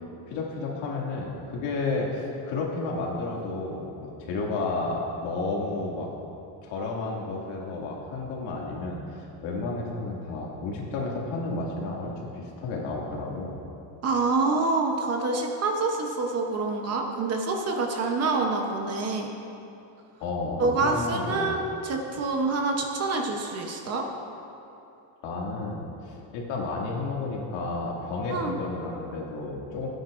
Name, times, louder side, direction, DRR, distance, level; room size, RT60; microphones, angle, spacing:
voice 1, 0.3-6.1 6.6-13.6 20.2-21.6 25.2-29.9, left 3 dB, 65° left, -2 dB, 2.2 m, -32 dB
voice 2, 14.0-19.3 20.6-24.0 28.3-28.5, right 3 dB, 30° right, 2 dB, 0.8 m, -26 dB
18.5 x 9.4 x 2.5 m, 2.8 s
cardioid pair, 160°, 48 cm